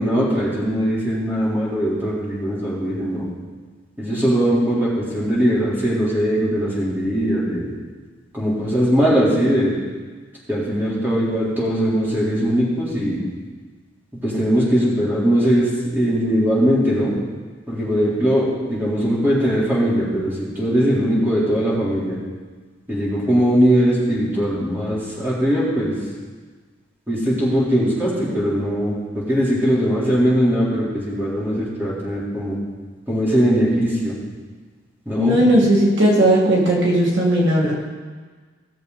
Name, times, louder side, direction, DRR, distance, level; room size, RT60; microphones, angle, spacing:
voice 1, 0.0-3.2 4.0-7.7 8.3-9.7 10.5-13.2 14.2-17.1 17.7-22.2 22.9-25.9 27.1-29.0 29.3-32.6 33.1-34.1 35.1-35.4, equal, 10° right, -8 dB, 3.6 m, -20 dB
voice 2, 35.2-37.7, right 1 dB, 65° right, -4 dB, 2.3 m, -16 dB
17.0 x 7.2 x 4.1 m, 1.4 s
head